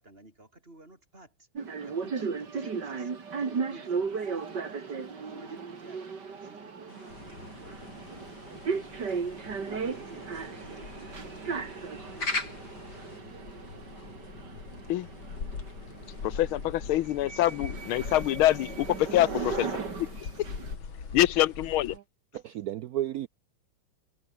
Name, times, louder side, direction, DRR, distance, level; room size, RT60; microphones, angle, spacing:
voice 1, 0.0-1.5 1.8-6.0 6.4-8.9 9.6-11.7, right 2 dB, 25° right, 6.9 m, -53 dB
sound 1, 1.5-20.7, right 5 dB, 55° right, 3.1 m, -36 dB
sound 2, 6.9-13.2, left 2 dB, 50° left, 6.8 m, -41 dB
sound 3, 7.1-22.0, left 5 dB, 70° left, 3.7 m, -43 dB
voice 2, 16.2-19.7 21.1-21.9, left 14 dB, 90° left, 1.6 m, -25 dB
voice 3, 22.3-23.3, right 13 dB, 85° right, 0.8 m, -33 dB
omnidirectional pair, 2.3 m